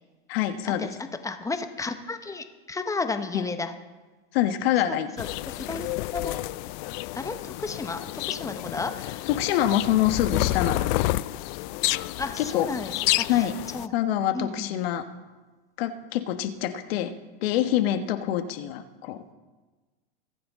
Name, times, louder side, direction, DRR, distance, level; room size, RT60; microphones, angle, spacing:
voice 1, 0.3-0.9 3.3-3.5 4.3-5.1 6.2-6.4 9.3-11.1 12.4-12.7 13.3-13.6 13.9-15.1 15.8-17.1 17.4-19.3, left 11 dB, 65° left, 9 dB, 1.3 m, -25 dB
voice 2, 1.2-3.7 4.9-6.4 7.1-9.3 12.2-13.3 13.7-13.9 14.3-14.7, left 3 dB, 10° left, 9 dB, 1.0 m, -33 dB
sound 1, 5.2-13.9, left 19 dB, 50° left, 0.5 m, -30 dB
22.5 x 9.6 x 3.7 m, 1.3 s
supercardioid pair, 120°, 32 cm